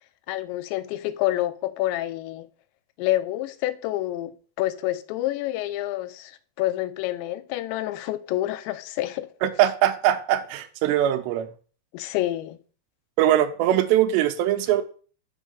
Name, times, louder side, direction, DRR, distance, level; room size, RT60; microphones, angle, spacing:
voice 1, 0.3-2.5 3.0-9.3 11.9-12.6, left 15 dB, 90° left, 2.9 m, -28 dB
voice 2, 9.4-11.5 13.2-14.8, right 12 dB, 80° right, 2.9 m, -21 dB
7.1 x 6.2 x 5.4 m
omnidirectional pair, 5.0 m